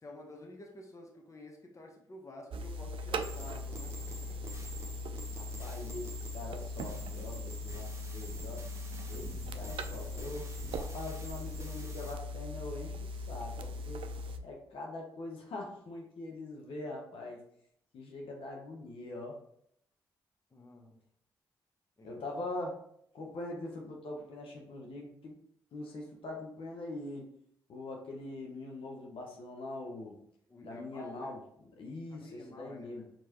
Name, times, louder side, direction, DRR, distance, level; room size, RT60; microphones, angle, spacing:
voice 1, 0.0-4.4 20.5-21.0 22.0-22.2 30.5-31.3 32.1-33.1, left 1 dB, 30° left, 1 dB, 0.9 m, -51 dB
sound 1, 2.5-14.4, left 1 dB, 60° right, 0.4 m, -40 dB
sound 2, 3.2-12.1, right 2 dB, 30° right, 0.9 m, -48 dB
voice 2, 5.3-8.6 9.1-10.5 10.8-14.0 14.4-17.4 17.9-19.4 22.0-22.8 23.1-25.4 25.7-27.2 27.7-30.2 30.6-33.0, left 2 dB, 65° left, 0 dB, 1.0 m, -43 dB
4.7 x 3.0 x 2.9 m, 0.69 s
hypercardioid pair, 45°, 10 cm